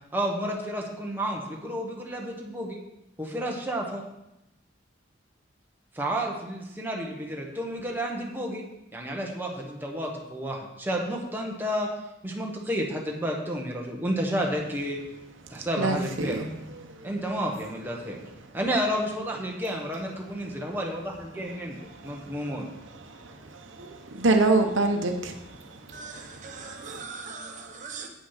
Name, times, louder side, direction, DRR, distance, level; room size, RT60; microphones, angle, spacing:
voice 1, 0.1-2.8 3.2-4.0 5.9-8.6 8.9-11.9 12.2-15.0 15.5-16.4 17.0-18.2 18.5-21.7 22.0-22.6, equal, 10° right, -1 dB, 1.2 m, -31 dB
voice 2, 15.8-16.5 22.0-22.2 23.1-27.0, right 2 dB, 85° right, 4 dB, 1.0 m, -27 dB
voice 3, 25.9-28.1, right 4 dB, 40° right, 3 dB, 1.3 m, -40 dB
8.6 x 6.1 x 5.8 m, 0.91 s
head